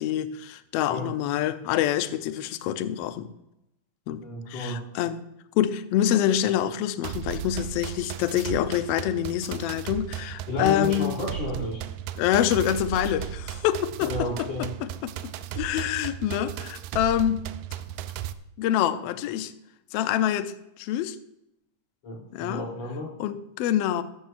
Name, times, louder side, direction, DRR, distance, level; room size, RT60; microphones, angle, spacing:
voice 1, 0.0-3.3 4.1-5.2 5.6-11.2 12.2-15.1 15.5-17.4 18.6-19.5 19.9-21.2 22.3-22.6 23.2-24.0, left 11 dB, 85° left, 1.4 m, -26 dB
voice 2, 4.2-4.8 10.5-11.8 14.0-14.7 22.0-23.1, left 2 dB, 55° left, 4.4 m, -32 dB
sound 1, 7.0-18.3, right 11 dB, 80° right, 1.9 m, -35 dB
15.0 x 13.0 x 2.5 m
omnidirectional pair, 3.6 m